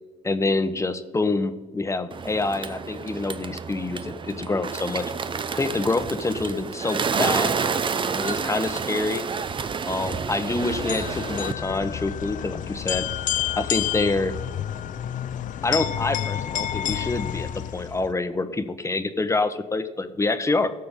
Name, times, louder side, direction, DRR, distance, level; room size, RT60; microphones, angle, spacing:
voice 1, 0.2-5.1 5.5-7.7 8.1-9.3 9.8-13.1 13.5-14.3 15.6-20.7, left 3 dB, 20° left, 10 dB, 0.9 m, -26 dB
Bird, 2.1-11.5, right 5 dB, 35° right, 0.6 m, -29 dB
sound 1, 10.6-18.1, left 10 dB, 60° left, 0.5 m, -29 dB
16.5 x 6.7 x 3.7 m, 1.4 s
cardioid pair, 85°, 15 cm